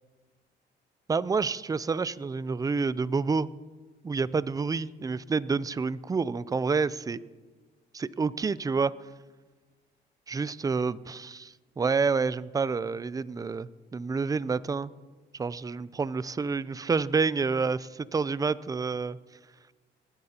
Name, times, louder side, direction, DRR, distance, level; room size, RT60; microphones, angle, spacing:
voice 1, 1.1-3.5 4.0-7.2 7.9-8.9 10.3-14.9 15.4-19.2, right 4 dB, 20° right, 18 dB, 0.4 m, -28 dB
20.0 x 11.0 x 2.9 m, 1.3 s
cardioid pair, 90°, 20 cm